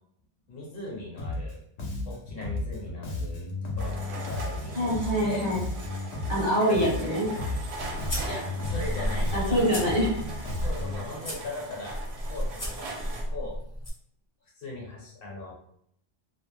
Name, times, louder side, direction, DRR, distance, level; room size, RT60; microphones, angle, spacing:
voice 1, 0.5-1.6 2.0-5.5 6.7-7.2 8.2-9.6 10.6-12.0 12.3-13.0 13.3-13.6 14.5-15.5, left 2 dB, 60° left, -3 dB, 1.0 m, -39 dB
Bass guitar, 1.2-1.5 1.8-6.5 6.7-11.1, left 2 dB, 85° left, 0.9 m, -34 dB
sound 1, 3.8-13.3, right 3 dB, 80° right, 0.8 m, -41 dB
voice 2, 4.7-5.6 6.3-7.3 9.3-10.2, equal, 30° right, -6 dB, 0.6 m, -25 dB
sound 2, 7.6-13.9, equal, 25° left, 0.5 m, -34 dB
2.3 x 2.1 x 3.1 m, 0.70 s
omnidirectional pair, 1.1 m